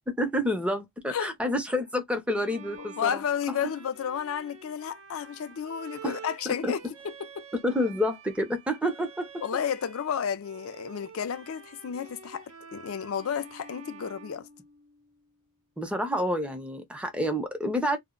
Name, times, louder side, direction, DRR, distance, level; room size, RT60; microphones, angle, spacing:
voice 1, 0.2-3.2 6.0-6.2 6.5-6.7 7.6-9.3 15.8-18.0, equal, 5° right, 0.5 m, -28 dB
Bowed string instrument, 2.3-10.1 10.4-15.2, right 5 dB, 60° right, 0.6 m, -48 dB
voice 2, 2.8-6.8 7.0-7.4 9.4-14.5, left 8 dB, 65° left, 0.4 m, -32 dB
2.1 x 2.0 x 3.6 m
head